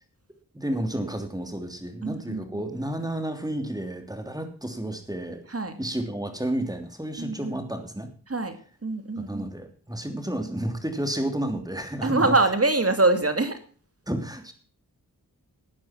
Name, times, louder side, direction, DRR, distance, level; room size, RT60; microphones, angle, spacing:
voice 1, 0.5-5.4 5.8-8.1 9.2-12.3 14.1-14.5, right 1 dB, 10° right, 6 dB, 3.1 m, -31 dB
voice 2, 2.0-2.6 5.5-5.7 7.2-7.6 8.3-8.6 8.8-9.4 12.0-13.6, right 2 dB, 40° right, 9 dB, 2.1 m, -24 dB
13.5 x 9.3 x 6.0 m, 0.42 s
cardioid pair, 40°, 38 cm